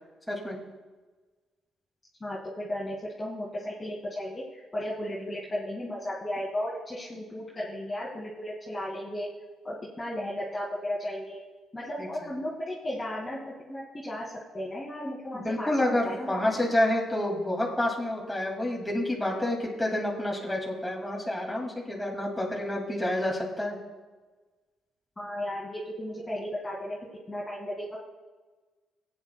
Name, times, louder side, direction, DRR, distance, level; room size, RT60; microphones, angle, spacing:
voice 1, 2.2-9.3 9.6-11.4 11.7-16.5 25.2-27.0 27.3-28.0, left 1 dB, 20° left, -7 dB, 2.2 m, -35 dB
voice 2, 15.3-23.8, left 1 dB, 5° left, -3 dB, 2.3 m, -29 dB
18.0 x 8.9 x 2.3 m, 1.3 s
cardioid pair, 90°, 0 cm